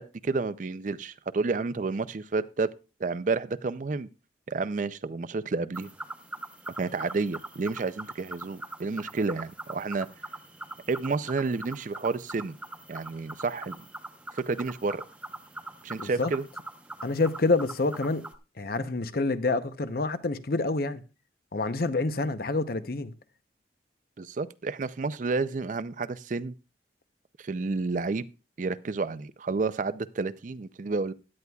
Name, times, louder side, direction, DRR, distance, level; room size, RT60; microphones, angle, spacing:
voice 1, 0.0-2.7 3.0-4.1 4.5-5.9 6.8-10.1 10.9-12.6 12.9-13.8 14.3-15.0 15.8-16.4 24.2-26.5 27.4-28.3 28.6-31.1, right 3 dB, 45° right, 0.4 m, -30 dB
sound 1, 5.7-18.4, right 2 dB, 5° right, 0.8 m, -42 dB
voice 2, 16.0-16.3 17.0-18.2 18.6-21.0 21.5-23.1, left 3 dB, 55° left, 0.7 m, -27 dB
16.5 x 11.0 x 2.3 m
head